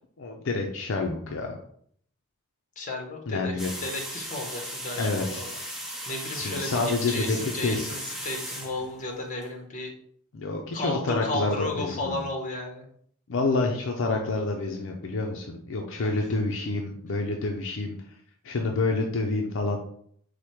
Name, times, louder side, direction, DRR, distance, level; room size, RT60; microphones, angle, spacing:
voice 1, 0.2-1.6 3.3-3.7 5.0-5.4 6.3-7.8 10.3-12.2 13.3-18.0 18.4-19.8, left 3 dB, 65° left, 2 dB, 0.5 m, -28 dB
voice 2, 2.8-9.9 10.7-12.9 16.0-16.3, left 2 dB, 40° left, 2 dB, 1.0 m, -34 dB
sound 1, 3.6-9.4, equal, ahead, 0.8 m, -37 dB
4.8 x 2.1 x 4.4 m, 0.64 s
head